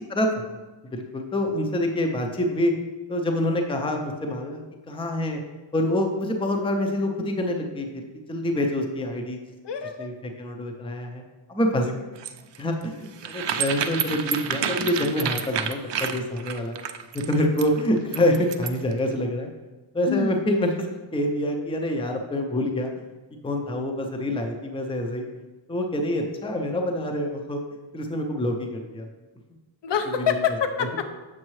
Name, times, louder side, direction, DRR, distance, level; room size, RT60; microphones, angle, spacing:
voice 1, 0.1-0.6 0.9-2.7 3.1-5.4 5.7-9.4 10.0-10.1 10.4-11.2 11.5-11.9 12.6-16.8 17.3-19.5 19.9-20.9 21.1-22.9 23.4-25.3 25.7-27.6 27.9-29.1 30.3-30.4, left 1 dB, 10° left, 3 dB, 0.5 m, -26 dB
voice 2, 9.6-10.1 14.8-14.9 20.1-20.3 29.8-31.1, left 7 dB, 60° left, 7 dB, 0.7 m, -26 dB
sound 1, 12.2-18.9, right 8 dB, 60° right, 0.5 m, -29 dB
7.5 x 6.3 x 3.1 m, 1.2 s
wide cardioid pair, 180°, 49 cm